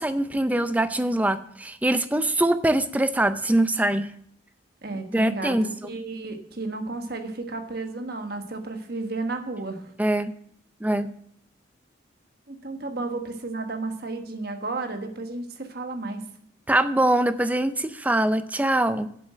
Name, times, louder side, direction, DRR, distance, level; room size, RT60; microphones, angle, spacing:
voice 1, 0.0-4.1 5.1-5.7 10.0-10.3 10.8-11.1 16.7-19.1, right 1 dB, 10° right, 12 dB, 0.4 m, -23 dB
voice 2, 4.8-5.6 5.8-9.9 12.5-16.2, right 3 dB, 50° right, 5 dB, 1.3 m, -32 dB
7.7 x 7.3 x 7.5 m, 0.67 s
head